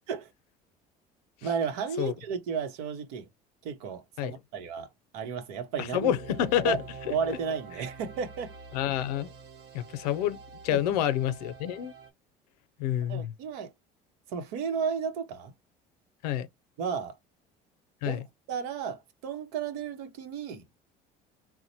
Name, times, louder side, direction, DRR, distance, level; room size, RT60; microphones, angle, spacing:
voice 1, 1.4-3.3 3.6-6.1 6.6-6.8 7.1-8.5 10.7-10.8 13.1-13.7 14.3-15.5 16.8-17.2 18.0-18.2 18.5-20.6, right 6 dB, 85° right, 0.9 m, -33 dB
voice 2, 5.9-6.8 7.1-7.2 8.7-9.3 9.7-10.4 10.6-11.9 12.8-13.3 16.2-16.5 18.0-18.2, left 11 dB, 90° left, 0.5 m, -28 dB
sound 1, 5.9-12.1, right 5 dB, 60° right, 1.2 m, -46 dB
4.0 x 2.1 x 2.8 m
supercardioid pair, 85°, 20 cm